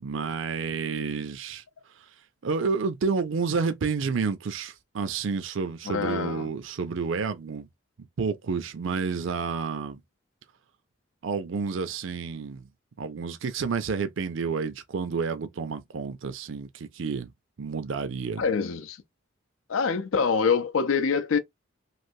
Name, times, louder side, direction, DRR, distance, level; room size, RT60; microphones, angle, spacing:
voice 1, 0.0-1.6 2.4-7.7 8.2-10.0 11.2-12.7 13.0-17.3 17.6-18.4, right 5 dB, 75° right, 0.5 m, -30 dB
voice 2, 5.9-6.5 18.4-19.0 19.7-21.4, left 5 dB, 85° left, 0.5 m, -25 dB
3.2 x 2.5 x 2.6 m
head